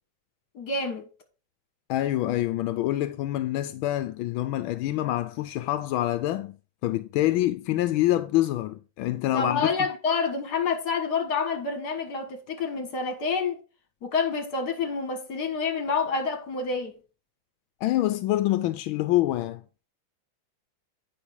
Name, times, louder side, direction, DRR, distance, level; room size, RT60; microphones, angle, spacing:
voice 1, 0.5-1.1 9.3-13.6 14.0-17.0, left 4 dB, 55° left, 2.1 m, -28 dB
voice 2, 1.9-6.6 6.8-9.7 17.8-19.6, left 15 dB, 85° left, 1.4 m, -26 dB
8.6 x 5.7 x 4.6 m
omnidirectional pair, 2.2 m